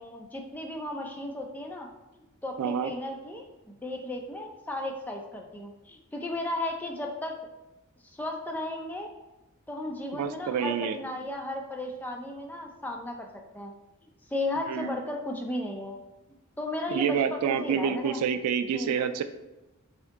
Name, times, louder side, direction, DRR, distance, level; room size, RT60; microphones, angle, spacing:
voice 1, 0.0-1.9 2.1-7.4 8.0-9.1 9.7-13.3 13.5-13.7 14.3-16.0 16.6-18.2 18.7-19.0, left 1 dB, 10° left, 1 dB, 0.4 m, -35 dB
voice 2, 2.6-2.9 10.2-11.0 14.7-14.9 16.9-19.2, right 7 dB, 85° right, 13 dB, 0.3 m, -28 dB
3.5 x 2.7 x 3.5 m, 1.0 s
head